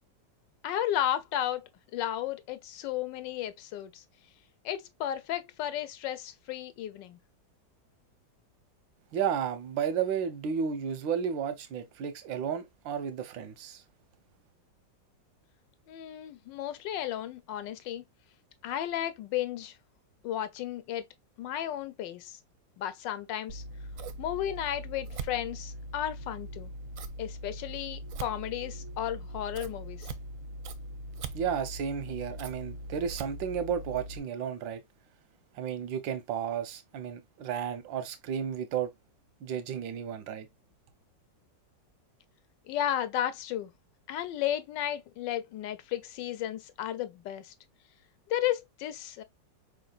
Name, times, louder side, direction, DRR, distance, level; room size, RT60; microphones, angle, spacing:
voice 1, 0.6-4.0 4.6-7.2 15.9-18.0 18.6-19.8 20.2-21.0 21.4-22.4 22.8-23.6 24.2-26.7 27.2-30.1 42.7-43.7 44.1-47.5 48.3-49.2, left 11 dB, 80° left, 1.3 m, -33 dB
voice 2, 9.1-13.8 31.3-34.8 35.5-38.9 39.4-40.5, right 8 dB, 85° right, 1.6 m, -33 dB
Scissors, 23.5-34.2, right 1 dB, 65° right, 0.8 m, -41 dB
4.8 x 3.8 x 2.3 m
omnidirectional pair, 2.0 m